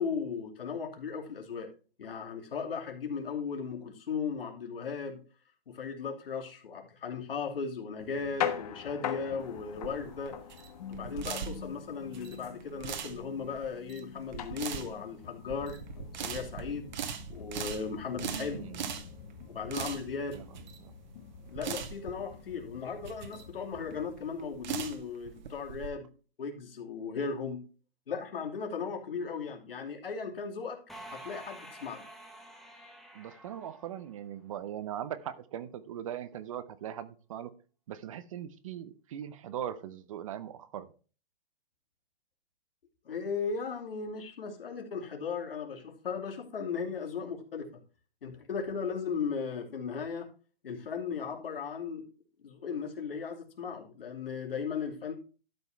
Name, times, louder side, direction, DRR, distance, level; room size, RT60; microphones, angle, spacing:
voice 1, 0.0-1.7 2.0-5.2 5.7-10.4 10.9-15.8 16.2-16.9 17.3-18.6 19.5-20.4 21.5-26.1 26.4-27.6 28.1-30.8 31.1-32.0 43.0-47.8 48.2-50.3 50.6-52.0 52.4-55.1, left 5 dB, 75° left, 2.8 m, -36 dB
sound 1, 8.0-24.1, left 8 dB, 40° left, 1.2 m, -43 dB
sound 2, 9.4-25.9, right 8 dB, 50° right, 1.3 m, -41 dB
voice 2, 18.3-18.8 20.3-20.4 20.8-20.9 33.1-37.5 37.9-40.9, right 10 dB, 35° right, 0.7 m, -40 dB
sound 3, 30.9-34.6, right 1 dB, ahead, 0.7 m, -49 dB
12.0 x 5.3 x 4.3 m
hypercardioid pair, 160°, 29 cm